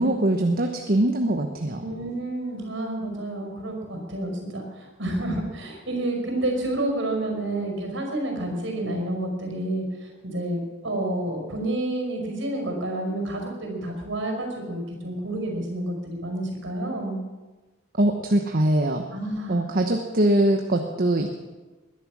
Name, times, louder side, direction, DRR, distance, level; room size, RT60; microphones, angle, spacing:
voice 1, 0.0-1.8 18.0-19.0 19.5-21.5, right 1 dB, 45° right, 4 dB, 1.1 m, -22 dB
voice 2, 1.8-17.2 19.1-19.6, right 1 dB, 65° right, 2 dB, 5.4 m, -29 dB
21.0 x 11.0 x 6.2 m, 1.2 s
head